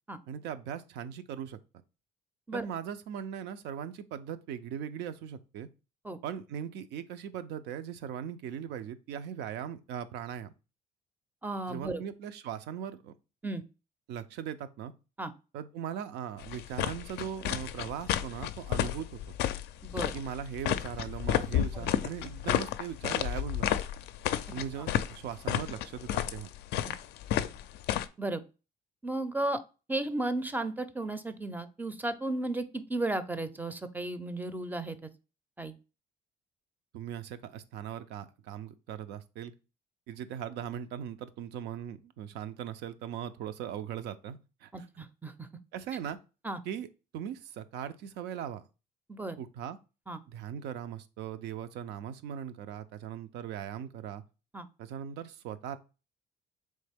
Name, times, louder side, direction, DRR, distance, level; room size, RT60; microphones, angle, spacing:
voice 1, 0.3-1.6 2.5-5.7 6.2-10.5 11.7-13.1 14.1-14.9 15.5-19.3 20.1-23.8 24.5-26.5 36.9-39.5 40.1-44.9 45.7-46.2 46.6-46.9 47.1-48.7 49.4-49.8 50.3-54.2 54.8-55.8, right 9 dB, 80° right, 0.5 m, -39 dB
voice 2, 11.4-12.0 13.4-13.6 15.2-15.3 19.8-20.1 21.7-21.9 28.2-28.4 29.0-29.6 29.9-35.1 35.6-35.8 44.7-45.5 46.4-46.6 49.1-49.4 50.1-50.2 54.5-54.7, right 2 dB, 10° right, 0.4 m, -34 dB
sound 1, 16.4-28.1, left 11 dB, 80° left, 0.4 m, -32 dB
3.9 x 3.2 x 3.4 m
cardioid pair, 110°, 17 cm